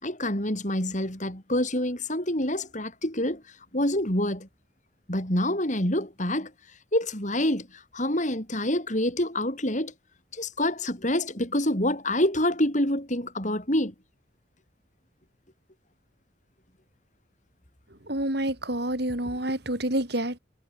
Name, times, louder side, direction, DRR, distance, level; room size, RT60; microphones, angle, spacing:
voice 1, 0.0-3.4 3.7-4.5 5.1-6.5 6.9-9.9 10.3-13.9, left 1 dB, 40° left, 7.5 m, -27 dB
voice 2, 18.1-20.4, right 1 dB, 55° right, 4.8 m, -28 dB
head